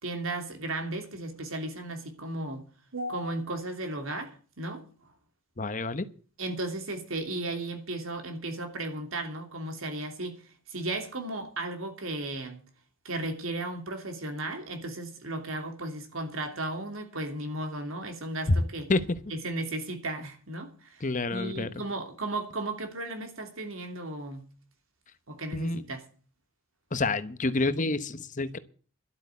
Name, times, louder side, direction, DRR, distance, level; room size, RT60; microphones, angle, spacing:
voice 1, 0.0-2.6 2.9-4.8 6.4-10.4 10.7-12.6 13.0-18.9 19.3-21.0 21.3-24.4 25.3-26.0, right 2 dB, 70° right, 2.9 m, -35 dB
voice 2, 5.6-6.1 18.5-18.6 18.9-19.0 21.0-21.7 25.5-25.8 26.9-28.6, left 2 dB, 35° left, 1.0 m, -28 dB
12.0 x 8.2 x 8.2 m
head